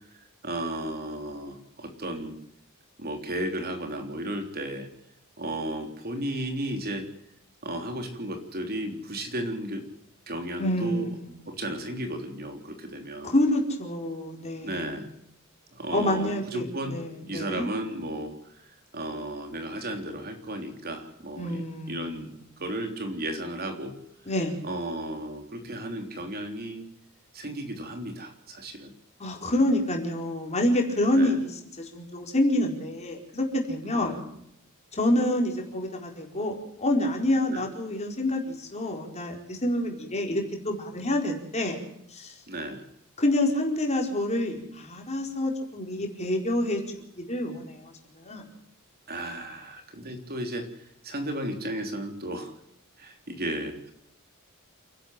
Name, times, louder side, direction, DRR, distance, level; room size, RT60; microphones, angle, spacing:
voice 1, 0.4-2.4 3.0-4.9 5.4-7.1 7.6-9.8 10.3-11.1 11.5-13.3 14.6-15.1 15.7-17.0 17.2-18.3 18.9-22.3 22.6-24.0 24.6-26.8 27.3-28.9 31.1-31.4 33.8-34.2 37.5-37.6 42.5-42.8 49.1-50.7 51.0-52.5 53.0-53.9, right 1 dB, 45° right, 4 dB, 3.4 m, -34 dB
voice 2, 10.6-11.4 13.2-15.0 15.9-17.7 21.4-22.2 24.3-24.6 29.2-34.2 34.9-41.8 42.1-42.3 43.2-46.8 47.3-48.4, left 1 dB, 30° left, 1 dB, 4.7 m, -27 dB
29.5 x 11.5 x 7.6 m, 0.74 s
head